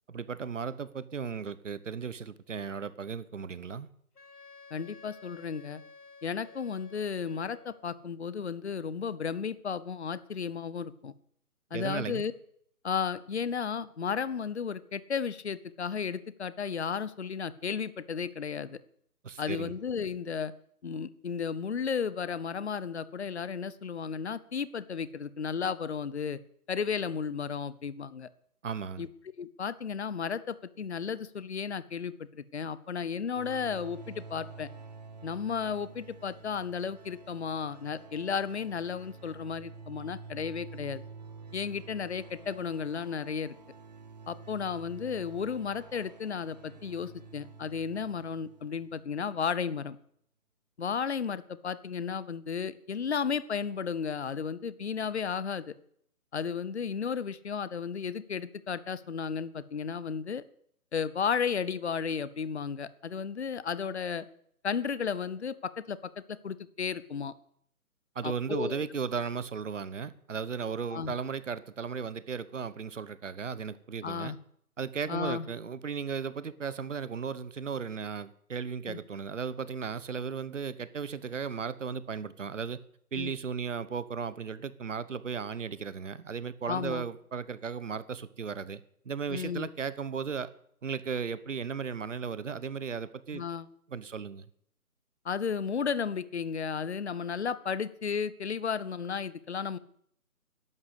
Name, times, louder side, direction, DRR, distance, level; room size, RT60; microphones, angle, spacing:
voice 1, 0.1-3.9 11.7-12.2 19.2-19.7 28.6-29.0 68.1-74.4 74.8-82.8 83.1-88.8 89.0-90.5 90.8-93.4 93.9-94.5, right 6 dB, 55° right, 16 dB, 1.1 m, -36 dB
Wind instrument woodwind instrument, 4.2-7.9, left 4 dB, 80° left, 2.1 m, -53 dB
voice 2, 4.7-5.8 6.2-11.1 11.7-12.3 12.8-18.8 19.4-20.5 20.8-26.4 26.7-28.3 29.0-29.1 29.4-34.7 35.2-41.0 41.5-43.5 44.3-50.0 50.8-55.7 56.3-60.4 60.9-64.2 64.6-67.3 68.2-68.8 70.9-71.1 74.0-74.4 75.1-75.5 78.9-79.0 83.2-83.3 86.7-87.0 89.3-89.7 93.3-93.7 95.2-99.8, left 6 dB, 45° left, 17 dB, 0.9 m, -34 dB
sound 1, 33.3-49.3, right 4 dB, 30° right, 0.9 m, -49 dB
12.0 x 11.0 x 8.1 m, 0.66 s
figure-of-eight pair, 160°, 45 cm